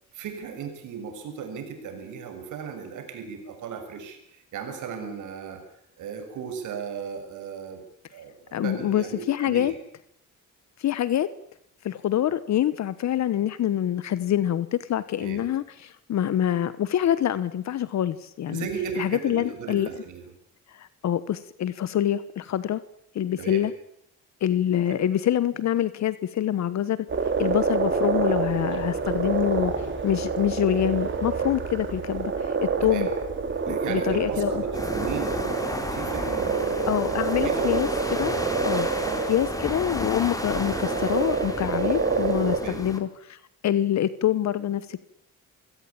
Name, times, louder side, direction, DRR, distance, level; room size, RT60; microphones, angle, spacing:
voice 1, 0.1-5.6 6.0-7.8 8.1-9.7 15.2-15.5 18.5-20.3 23.4-23.7 24.8-25.0 32.8-33.1 33.5-37.8 39.0-39.3 42.6-42.9, right 6 dB, 80° right, 6 dB, 6.5 m, -36 dB
voice 2, 8.5-9.7 10.8-11.3 11.8-18.7 19.0-19.9 20.7-22.8 23.1-23.7 24.4-27.0 27.4-29.7 30.0-33.1 33.7-34.6 36.9-38.4 38.6-38.9 39.3-45.1, left 11 dB, 65° left, 15 dB, 1.2 m, -26 dB
sound 1, 27.1-42.6, right 5 dB, 40° right, 4.9 m, -27 dB
sound 2, 34.7-43.0, left 1 dB, 10° left, 4.1 m, -33 dB
27.0 x 17.0 x 8.7 m, 0.72 s
cardioid pair, 90°, 30 cm